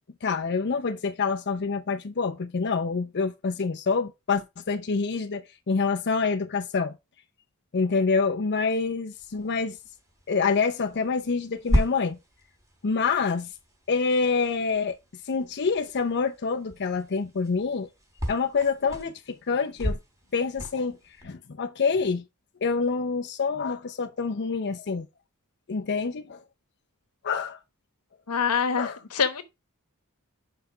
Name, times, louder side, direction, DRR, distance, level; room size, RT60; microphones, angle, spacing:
voice 1, 0.2-6.9 7.7-9.8 10.3-12.2 12.8-13.5 13.9-15.0 15.3-17.9 18.3-20.0 20.3-21.0 21.2-22.2 22.6-25.1 25.7-26.4 27.2-27.6 28.8-29.0, left 4 dB, 50° left, 0.6 m, -26 dB
sound 1, 9.1-21.2, equal, 15° right, 3.5 m, -35 dB
voice 2, 28.3-29.5, left 6 dB, 90° left, 1.1 m, -25 dB
5.8 x 5.6 x 4.9 m
head